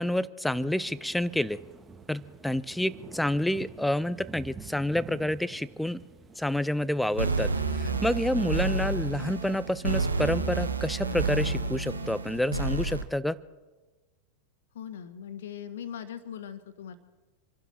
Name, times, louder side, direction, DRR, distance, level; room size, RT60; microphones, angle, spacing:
voice 1, 0.0-1.6 2.1-6.0 6.4-7.5 7.8-13.4, left 1 dB, 5° left, 19 dB, 0.6 m, -28 dB
sound 1, 0.7-9.0, right 5 dB, 20° right, 1.9 m, -48 dB
sound 2, 7.1-13.0, right 3 dB, 80° right, 1.5 m, -29 dB
voice 2, 14.7-17.0, left 9 dB, 60° left, 11 dB, 1.6 m, -40 dB
28.0 x 12.0 x 4.4 m, 1.2 s
figure-of-eight pair, 90°, 0 cm